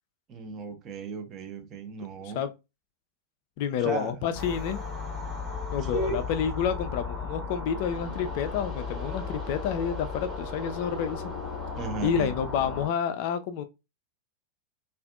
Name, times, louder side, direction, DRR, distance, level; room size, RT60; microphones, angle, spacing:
voice 1, 0.3-2.4 3.8-4.2 5.8-6.2 11.8-12.3, right 4 dB, 30° right, 0.6 m, -35 dB
voice 2, 3.6-4.8 5.7-11.2 12.0-13.6, left 8 dB, 45° left, 0.3 m, -29 dB
sound 1, 4.3-12.9, left 4 dB, 15° left, 0.8 m, -35 dB
2.5 x 2.3 x 2.3 m
figure-of-eight pair, 90°, 0 cm